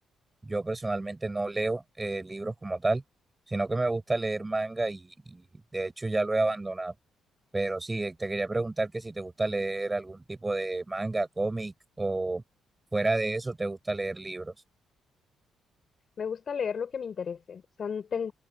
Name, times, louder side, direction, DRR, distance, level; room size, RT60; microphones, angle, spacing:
voice 1, 0.4-3.0 3.5-5.4 5.7-6.9 7.5-12.4 12.9-14.5, right 2 dB, 20° right, 7.9 m, -30 dB
voice 2, 16.2-18.3, left 6 dB, 50° left, 6.1 m, -33 dB
cardioid pair, 90°, 0 cm